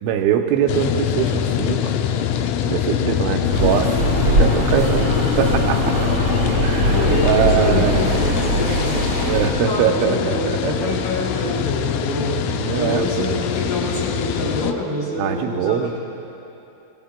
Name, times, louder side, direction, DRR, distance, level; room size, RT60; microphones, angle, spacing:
voice 1, 0.0-1.9 2.6-6.1 6.6-8.0 9.2-10.9 12.5-13.4 15.2-15.9, right 8 dB, 85° right, 4 dB, 3.0 m, -22 dB
sound 1, 0.7-14.7, left 9 dB, 90° left, 3.2 m, -23 dB
sound 2, 3.5-9.5, right 2 dB, 60° right, 0.8 m, -21 dB
voice 2, 4.6-5.0 6.9-8.9 9.4-12.4 12.7-16.0, left 1 dB, 55° left, -7 dB, 3.1 m, -26 dB
26.5 x 16.5 x 2.2 m, 2.9 s
omnidirectional pair, 5.5 m